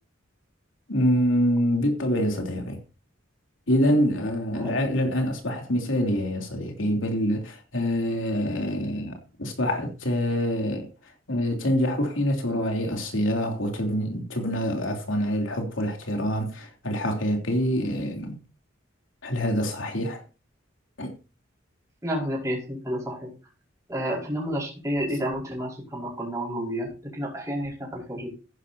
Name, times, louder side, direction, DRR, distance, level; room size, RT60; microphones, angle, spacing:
voice 1, 0.9-2.8 3.7-10.9 11.3-18.4 19.2-20.2 21.0-21.1, equal, 80° left, 3.2 m, -26 dB
voice 2, 22.0-23.3 23.9-28.3, equal, 15° right, 5.3 m, -30 dB
14.5 x 11.0 x 2.8 m
head